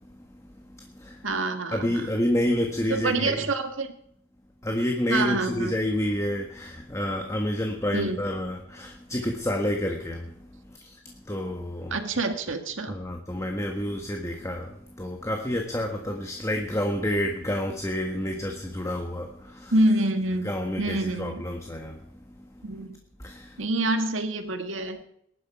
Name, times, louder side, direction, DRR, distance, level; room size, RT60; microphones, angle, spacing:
voice 1, 0.7-1.3 1.7-3.4 4.6-10.3 10.6-11.9 12.9-19.7 20.4-22.0 22.6-22.7 23.2-23.6, left 1 dB, 15° left, 3 dB, 1.5 m, -29 dB
voice 2, 1.2-2.1 2.9-3.9 5.1-5.8 7.9-8.2 11.9-13.0 19.7-20.5 20.8-21.4 22.6-23.0 23.6-25.0, right 2 dB, 70° right, 7 dB, 1.9 m, -26 dB
20.5 x 11.0 x 4.8 m, 0.71 s
head